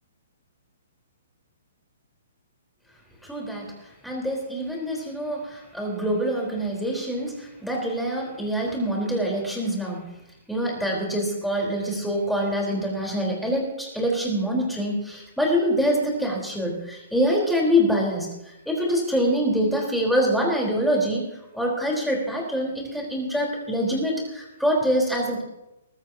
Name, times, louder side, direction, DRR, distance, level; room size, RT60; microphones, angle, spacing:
voice 1, 3.2-3.7 4.0-10.1 10.5-18.3 18.7-21.2 21.5-25.4, equal, ahead, -2 dB, 4.1 m, -25 dB
21.0 x 13.5 x 2.9 m, 0.95 s
hypercardioid pair, 135°, 0 cm